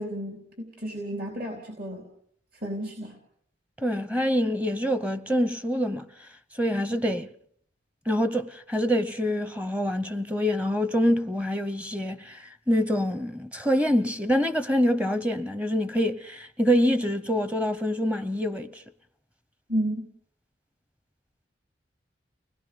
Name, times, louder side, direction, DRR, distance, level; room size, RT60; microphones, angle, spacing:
voice 1, 0.0-2.0 2.6-3.1 19.7-20.1, equal, 50° right, 3.9 m, -32 dB
voice 2, 3.8-6.1 6.6-7.3 8.1-18.8, equal, 10° right, 0.8 m, -25 dB
30.0 x 20.5 x 5.2 m
head